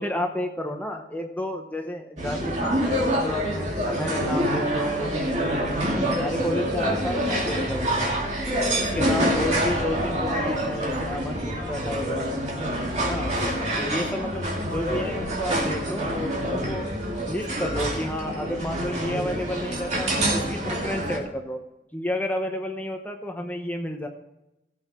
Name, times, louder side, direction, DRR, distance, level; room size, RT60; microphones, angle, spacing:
voice 1, 0.0-8.1 8.8-12.4 12.9-13.3 13.8-14.4 14.7-16.9 17.3-21.6 21.9-24.1, left 1 dB, 10° left, 3 dB, 0.8 m, -31 dB
sound 1, 2.2-21.2, equal, 40° right, 2.6 m, -26 dB
16.0 x 8.1 x 4.4 m, 0.92 s
head